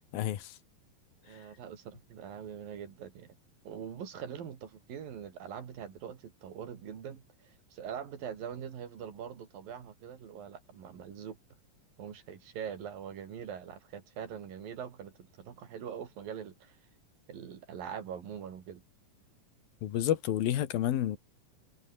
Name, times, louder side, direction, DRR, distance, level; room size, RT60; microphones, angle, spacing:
voice 1, 0.1-0.6 1.3-1.5 19.8-21.2, left 12 dB, 90° left, 3.5 m, -30 dB
voice 2, 1.2-3.4 3.6-11.4 12.0-16.8 17.3-18.8, right 8 dB, 75° right, 4.5 m, -43 dB
omnidirectional pair, 4.1 m